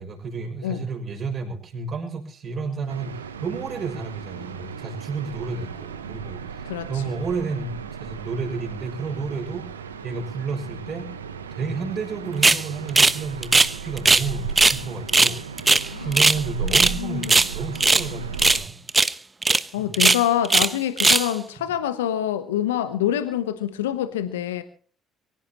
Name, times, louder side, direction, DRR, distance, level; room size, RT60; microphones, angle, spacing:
voice 1, 0.0-9.7 10.0-11.1 11.5-15.4 16.0-18.8 19.8-19.9, right 4 dB, 45° right, 2 dB, 6.6 m, -31 dB
sound 1, 2.9-18.6, right 6 dB, 90° right, 0.9 m, -36 dB
voice 2, 6.6-7.1 15.9-16.2 16.6-17.3 19.7-24.6, left 11 dB, 80° left, 12 dB, 0.9 m, -26 dB
sound 2, 12.4-12.6 13.0-13.2 13.4-14.3 14.6-14.8 15.1-16.4 16.7-17.0 17.2-18.1 18.4-18.6 18.9-19.1 19.4-19.6 19.9-20.7 21.0-21.3, right 3 dB, 25° right, 1.1 m, -17 dB
24.0 x 17.0 x 3.0 m, 0.43 s
hypercardioid pair, 50°, 0 cm